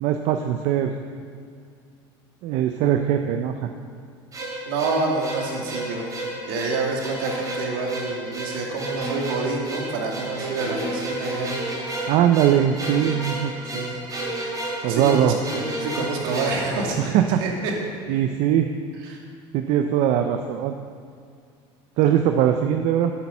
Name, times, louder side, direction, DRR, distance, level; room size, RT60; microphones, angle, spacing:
voice 1, 0.0-0.9 2.4-3.7 12.1-13.5 14.8-15.4 17.0-17.4 18.1-18.7 19.5-20.7 22.0-23.1, right 10 dB, 65° right, 6 dB, 0.6 m, -21 dB
sound 1, 4.3-17.6, right 1 dB, 30° right, 3.1 m, -32 dB
voice 2, 4.7-6.1 6.4-11.6 13.7-14.0 14.8-17.8 19.0-19.2, right 3 dB, 80° right, 0 dB, 2.2 m, -28 dB
9.3 x 8.6 x 5.7 m, 2.2 s
supercardioid pair, 105°, 12 cm